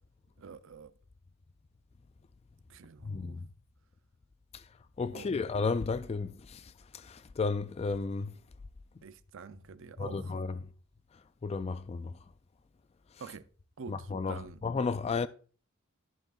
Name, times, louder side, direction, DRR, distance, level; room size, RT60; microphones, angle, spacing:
voice 1, 0.4-0.9 2.7-3.4 5.1-5.3 9.0-10.3 13.2-13.4 13.8-14.6, right 5 dB, 60° right, 0.5 m, -47 dB
voice 2, 3.0-3.5 4.5-4.7 5.0-8.4 10.0-10.7 11.1-12.2 13.1-13.2 13.9-15.3, left 4 dB, 30° left, 0.3 m, -34 dB
14.0 x 4.8 x 2.4 m
head